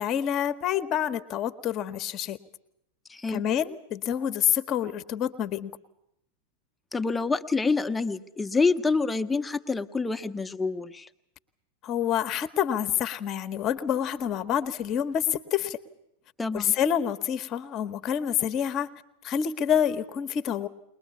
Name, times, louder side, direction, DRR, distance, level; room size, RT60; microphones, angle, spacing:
voice 1, 0.0-2.4 3.3-5.7 11.8-15.8 16.5-18.9 19.2-20.7, left 9 dB, 35° left, 12 dB, 1.1 m, -27 dB
voice 2, 3.1-3.4 6.9-11.1 16.4-16.7, left 4 dB, 10° left, 8 dB, 1.0 m, -27 dB
21.0 x 21.0 x 8.3 m, 0.79 s
figure-of-eight pair, 90°, 0 cm